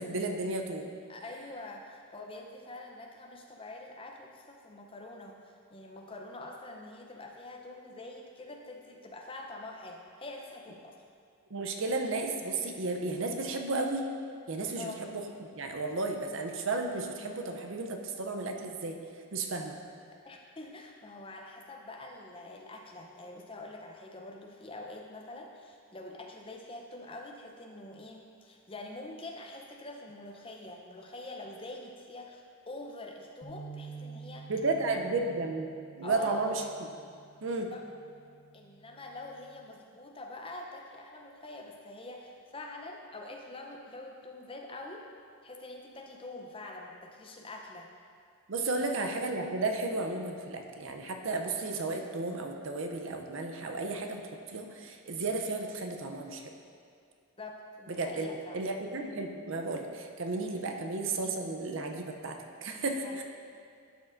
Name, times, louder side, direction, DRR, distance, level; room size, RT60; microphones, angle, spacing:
voice 1, 0.0-1.0 11.5-14.0 14.5-19.0 19.3-19.8 34.5-35.7 36.0-36.6 37.4-37.7 48.5-54.2 54.5-56.5 57.9-58.3 58.5-63.2, right 3 dB, 55° right, 3 dB, 0.6 m, -33 dB
voice 2, 1.1-11.0 14.7-15.0 20.2-34.5 34.9-35.0 36.0-36.6 37.7-37.8 38.5-45.1 45.4-47.9 57.4-58.6 63.0-63.2, left 2 dB, 25° left, 1 dB, 0.6 m, -45 dB
sound 1, 33.4-39.7, right 5 dB, 40° left, 1.2 m, -50 dB
11.5 x 6.4 x 2.6 m, 2.3 s
head